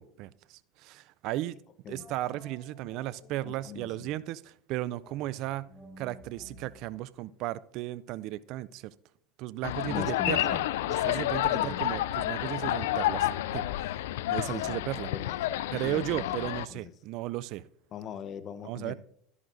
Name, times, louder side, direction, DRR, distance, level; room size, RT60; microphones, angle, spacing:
voice 1, 0.0-1.6 1.9-5.7 6.0-8.9 9.4-10.6 10.9-14.0 14.3-15.1 15.7-17.7 18.6-18.9, right 15 dB, 60° right, 0.3 m, -35 dB
sound 1, 2.0-4.2 5.0-8.3, equal, 15° left, 4.5 m, -54 dB
voice 2, 3.4-4.1 9.9-10.6 11.0-11.2 11.6-11.8 14.4-15.4 15.8-16.9 17.9-18.9, left 8 dB, 45° left, 0.8 m, -41 dB
sound 2, 9.6-16.7, left 14 dB, 75° left, 0.3 m, -30 dB
12.5 x 11.0 x 2.6 m
hypercardioid pair, 85°, 0 cm